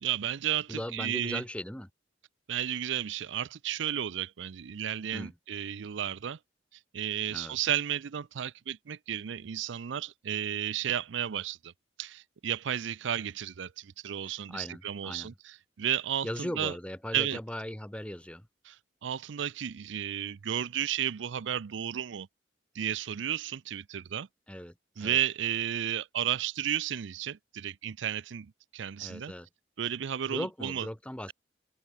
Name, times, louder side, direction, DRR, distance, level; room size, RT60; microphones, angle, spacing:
voice 1, 0.0-1.4 2.5-6.4 6.9-11.7 12.0-16.7 17.1-17.4 18.7-18.8 19.0-22.3 22.7-24.3 25.0-29.3 29.8-30.9, right 10 dB, 80° right, 0.5 m, -33 dB
voice 2, 0.7-1.9 5.1-5.3 7.3-7.6 14.2-15.3 16.2-18.5 24.5-25.2 29.0-29.5 30.2-31.3, equal, 5° left, 1.2 m, -39 dB
open air
head